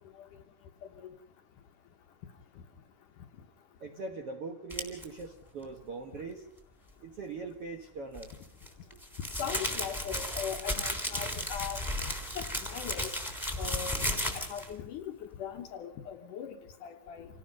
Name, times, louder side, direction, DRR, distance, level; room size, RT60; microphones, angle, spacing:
voice 1, 3.8-6.4 7.0-8.3, right 3 dB, 60° right, 3 dB, 1.6 m, -41 dB
sound 1, 4.7-5.0 8.1-14.7, left 1 dB, ahead, 2.8 m, -34 dB
voice 2, 9.4-11.8 12.4-13.2 13.6-13.9 14.3-16.6 16.8-17.3, left 8 dB, 65° left, 5 dB, 2.2 m, -39 dB
27.5 x 18.0 x 5.3 m, 0.71 s
omnidirectional pair, 4.6 m